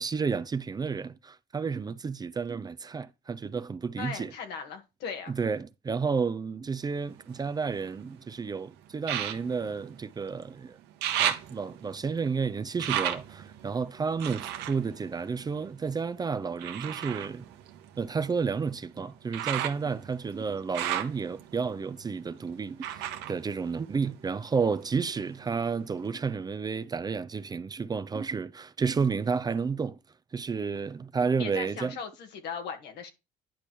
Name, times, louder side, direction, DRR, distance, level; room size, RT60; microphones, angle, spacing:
voice 1, 0.0-4.3 5.3-10.8 11.2-17.5 18.0-30.0 30.3-32.0, right 5 dB, 25° right, 0.5 m, -31 dB
voice 2, 4.0-5.3 31.4-33.1, left 6 dB, 80° left, 1.5 m, -38 dB
sound 1, 6.8-8.2 9.0-10.5 10.8-16.0 16.6-24.4 24.8-25.6 26.1-26.2, right 11 dB, 90° right, 1.0 m, -35 dB
10.0 x 5.2 x 3.1 m
cardioid pair, 110°, 17 cm